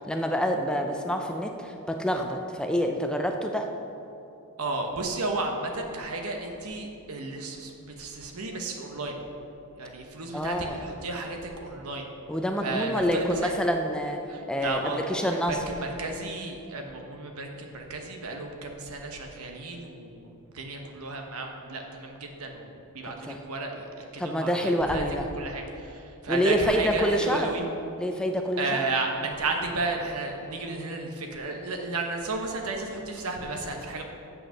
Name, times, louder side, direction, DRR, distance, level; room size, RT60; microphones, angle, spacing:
voice 1, 0.0-3.7 10.3-10.8 12.3-14.2 14.5-15.6 23.0-23.4 24.2-25.3 26.3-27.5 28.0-28.8, equal, 5° left, 4 dB, 0.4 m, -27 dB
voice 2, 4.6-9.1 9.8-12.1 12.6-13.5 14.3-24.5 24.9-25.0 25.3-27.6 28.6-34.0, right 3 dB, 80° right, 3 dB, 1.2 m, -33 dB
7.7 x 6.5 x 6.4 m, 2.8 s
head